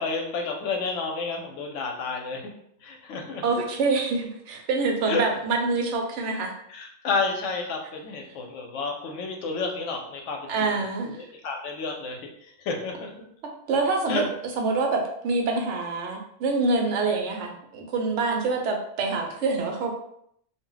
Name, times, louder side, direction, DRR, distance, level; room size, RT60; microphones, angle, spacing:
voice 1, 0.0-2.5 2.8-3.6 5.1-5.2 6.7-13.1 14.1-14.2, left 4 dB, 90° left, 2 dB, 0.9 m, -31 dB
voice 2, 3.4-6.5 10.5-11.2 13.7-14.2 14.6-19.9, right 3 dB, 75° right, 2 dB, 0.9 m, -26 dB
2.3 x 2.0 x 3.8 m, 0.71 s
omnidirectional pair, 1.2 m